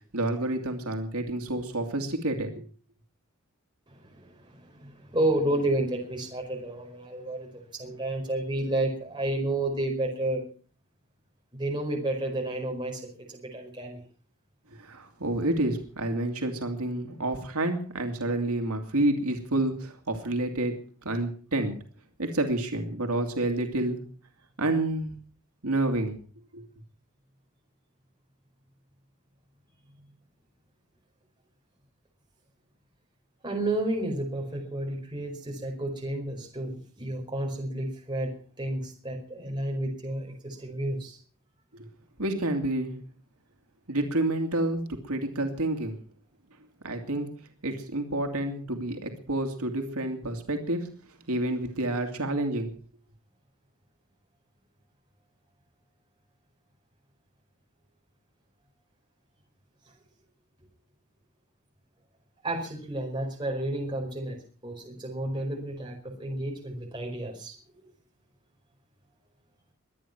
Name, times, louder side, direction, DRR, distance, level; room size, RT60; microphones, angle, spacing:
voice 1, 0.1-2.6 14.7-20.7 21.0-21.8 22.2-24.0 24.6-25.1 25.6-26.2 26.5-26.6 41.7-41.9 42.2-43.0 43.9-46.0 46.8-47.3 47.6-50.9 51.3-52.7, right 1 dB, 85° right, 5 dB, 2.4 m, -29 dB
voice 2, 3.9-10.4 11.5-14.0 33.4-38.3 38.6-41.2 62.4-67.6, right 1 dB, 20° right, 0 dB, 4.7 m, -31 dB
23.5 x 9.2 x 5.9 m, 0.40 s
head